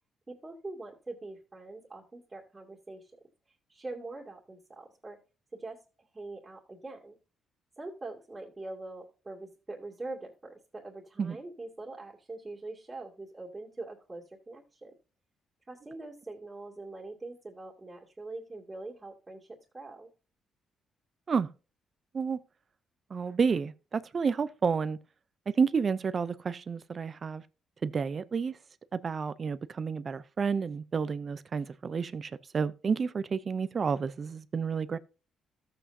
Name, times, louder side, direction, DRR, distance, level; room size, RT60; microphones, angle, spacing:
voice 1, 0.3-3.1 3.7-5.2 5.5-7.2 7.8-14.9 15.7-20.1, right 2 dB, 20° right, 2.4 m, -43 dB
voice 2, 23.1-25.0 25.6-27.4 27.8-28.5 28.9-35.0, right 5 dB, 40° right, 0.5 m, -30 dB
13.5 x 7.9 x 2.7 m
cardioid pair, 90°, 0 cm